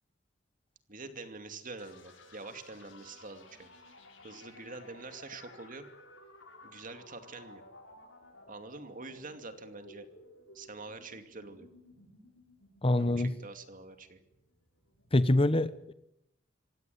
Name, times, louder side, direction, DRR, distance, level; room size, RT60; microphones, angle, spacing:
voice 1, 0.9-3.7 4.2-5.9 6.6-7.6 8.5-10.1 10.5-11.7 13.0-14.2, right 3 dB, 45° right, 8 dB, 2.6 m, -46 dB
sound 1, 1.8-15.4, left 2 dB, 90° left, 7.5 m, -56 dB
voice 2, 12.8-13.3 15.1-15.9, left 1 dB, 30° left, 14 dB, 1.0 m, -25 dB
26.5 x 16.5 x 9.5 m, 0.83 s
head